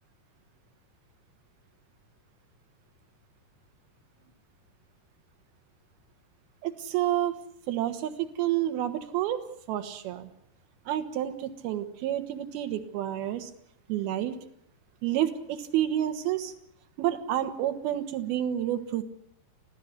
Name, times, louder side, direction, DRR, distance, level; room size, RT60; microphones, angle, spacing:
voice 1, 6.6-7.4 7.7-8.1 8.4-9.4 9.7-10.3 10.9-13.5 13.9-14.4 15.0-16.5 17.0-19.0, right 12 dB, 75° right, 10 dB, 3.1 m, -29 dB
25.5 x 16.0 x 6.7 m, 0.73 s
omnidirectional pair, 4.6 m